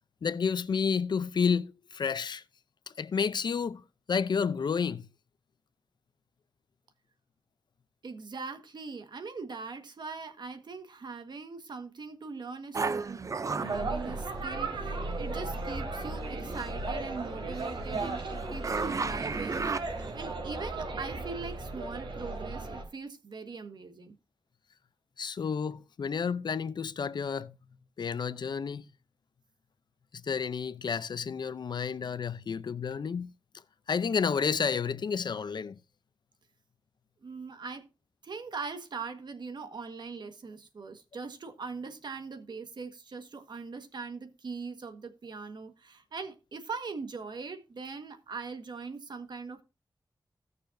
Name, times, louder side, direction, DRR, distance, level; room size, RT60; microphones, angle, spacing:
voice 1, 0.2-2.4 2.9-5.1 25.2-27.5 28.0-28.8 30.2-33.3 33.9-35.8, left 6 dB, 65° left, 0.6 m, -30 dB
voice 2, 8.0-19.6 20.1-24.2 37.2-37.9 38.2-49.6, right 4 dB, 65° right, 1.5 m, -41 dB
sound 1, 12.7-14.9 15.6-16.8 17.2-20.3, right 4 dB, 40° right, 0.5 m, -35 dB
sound 2, 13.6-22.8, right 3 dB, 80° right, 3.3 m, -36 dB
16.5 x 6.8 x 2.6 m
wide cardioid pair, 135°, 8 cm